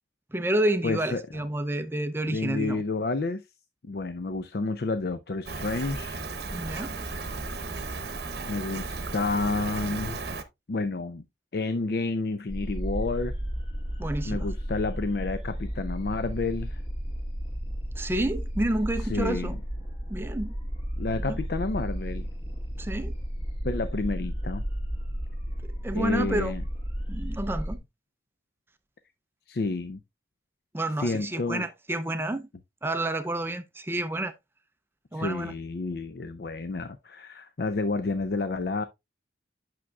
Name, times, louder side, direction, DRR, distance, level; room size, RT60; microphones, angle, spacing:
voice 1, 0.3-2.8 6.5-7.0 14.0-14.5 18.0-19.5 20.1-20.5 21.2-21.4 22.8-23.1 25.6-26.5 27.1-27.8 30.7-32.5 32.8-34.3 35.1-35.5, right 1 dB, 10° right, 0.4 m, -29 dB
voice 2, 0.8-1.2 2.3-3.4 3.8-6.2 8.5-10.2 10.7-11.2 11.5-13.3 14.2-16.8 19.0-19.5 21.0-22.3 23.6-24.6 25.9-26.6 29.5-30.0 31.0-31.7 35.1-38.8, left 3 dB, 55° left, 0.5 m, -30 dB
Rain, 5.5-10.4, right 3 dB, 60° right, 0.8 m, -35 dB
sound 1, 12.5-27.8, equal, 30° left, 2.0 m, -33 dB
8.5 x 6.0 x 2.3 m
head